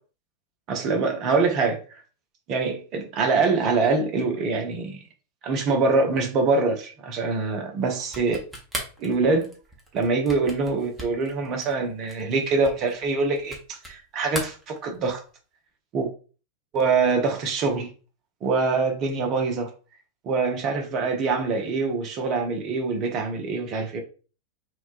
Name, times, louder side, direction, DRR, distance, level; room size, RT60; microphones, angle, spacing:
voice 1, 0.7-1.8 2.5-5.0 5.4-8.4 9.0-9.5 9.9-15.2 15.9-16.1 16.7-17.9 18.4-19.7 20.2-24.0, right 4 dB, 35° right, 0.5 m, -24 dB
sound 1, 8.0-14.0 14.3-15.3, equal, 5° right, 0.8 m, -38 dB
3.0 x 2.1 x 2.4 m
figure-of-eight pair, 90°, 0 cm